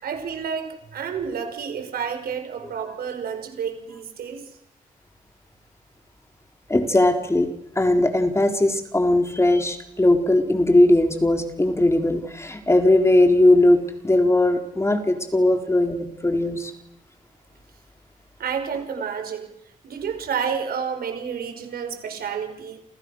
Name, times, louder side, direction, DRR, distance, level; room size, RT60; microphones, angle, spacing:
voice 1, 0.0-4.4 18.4-19.5 19.8-22.8, right 7 dB, 90° right, 7 dB, 5.3 m, -30 dB
voice 2, 6.7-7.5 7.8-16.7, left 1 dB, 20° left, 5 dB, 3.9 m, -19 dB
29.5 x 29.0 x 6.5 m, 0.80 s
cardioid pair, 90°, 15 cm